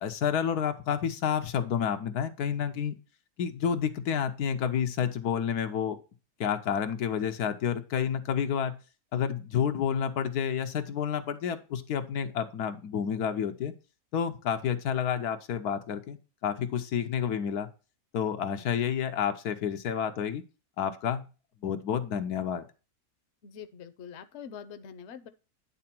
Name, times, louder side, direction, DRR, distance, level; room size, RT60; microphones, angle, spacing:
voice 1, 0.0-2.9 3.4-6.0 6.4-8.7 9.1-13.7 14.1-16.2 16.4-17.7 18.1-20.4 20.8-21.2 21.6-22.7, left 8 dB, 90° left, 8 dB, 1.4 m, -29 dB
voice 2, 23.4-25.3, left 7 dB, 55° left, 11 dB, 0.9 m, -44 dB
9.8 x 3.8 x 5.9 m, 0.32 s
omnidirectional pair, 1.6 m